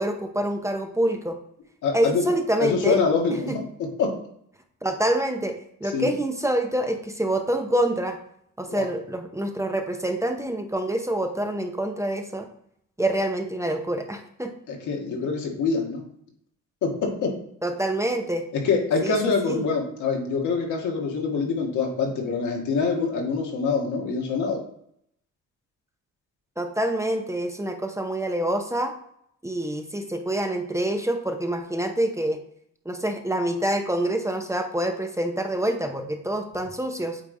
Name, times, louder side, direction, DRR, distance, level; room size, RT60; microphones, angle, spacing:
voice 1, 0.0-1.4 1.9-3.0 3.5-3.6 4.8-8.2 8.6-12.5 13.0-14.5 17.6-18.5 19.0-19.2 19.5-19.6 26.6-28.9 29.4-32.4 32.8-37.2, right 1 dB, 10° right, 4 dB, 0.7 m, -26 dB
voice 2, 1.8-2.3 2.6-3.6 4.0-4.2 5.9-6.1 8.7-8.8 14.7-16.0 16.8-17.3 18.6-24.6, left 4 dB, 80° left, 1 dB, 1.7 m, -25 dB
8.4 x 3.4 x 3.8 m, 0.70 s
cardioid pair, 90°, 30 cm